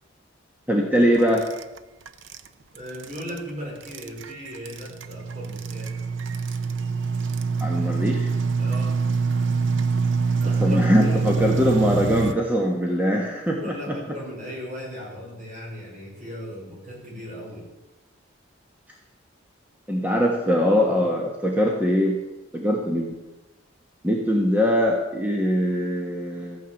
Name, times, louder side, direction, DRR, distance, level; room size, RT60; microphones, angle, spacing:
voice 1, 0.7-1.4 7.6-8.3 10.6-14.0 19.9-22.2 22.5-23.1 24.0-26.6, equal, 10° right, -1 dB, 1.3 m, -22 dB
sound 1, 1.2-1.8 2.1-2.4 3.0-3.4 3.8-12.3, right 5 dB, 75° right, 0.8 m, -25 dB
voice 2, 2.7-5.9 8.6-8.9 10.4-11.3 13.5-17.7, equal, 40° right, -2 dB, 5.3 m, -37 dB
14.5 x 9.4 x 7.1 m, 1.1 s
head